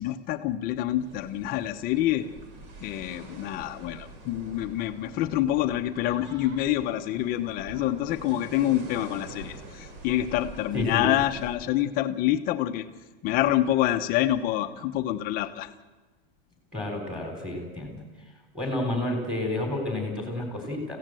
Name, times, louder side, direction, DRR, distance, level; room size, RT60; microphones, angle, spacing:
voice 1, 0.0-2.3 2.8-12.9 13.2-15.7, left 13 dB, 30° left, 7 dB, 1.0 m, -27 dB
sound 1, 0.9-11.6, right 2 dB, 40° right, 4.1 m, -45 dB
voice 2, 10.7-11.1 16.7-18.0 18.5-21.0, left 1 dB, ahead, 2 dB, 3.6 m, -30 dB
26.5 x 16.0 x 7.7 m, 1.3 s
supercardioid pair, 165°, 31 cm